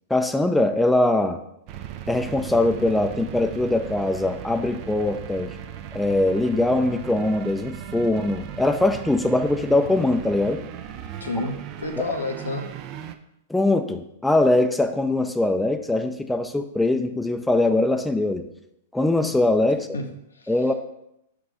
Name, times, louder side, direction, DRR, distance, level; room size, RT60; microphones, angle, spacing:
voice 1, 0.1-1.4 2.1-5.5 5.9-10.6 13.5-18.4 18.9-19.9 20.5-20.7, left 2 dB, 5° left, 7 dB, 0.5 m, -22 dB
sound 1, 1.7-13.1, right 9 dB, 45° right, 0.5 m, -37 dB
voice 2, 11.2-12.7 19.9-20.5, left 2 dB, 90° left, 3 dB, 1.0 m, -30 dB
5.5 x 4.8 x 4.9 m, 0.80 s
hypercardioid pair, 110°, 0 cm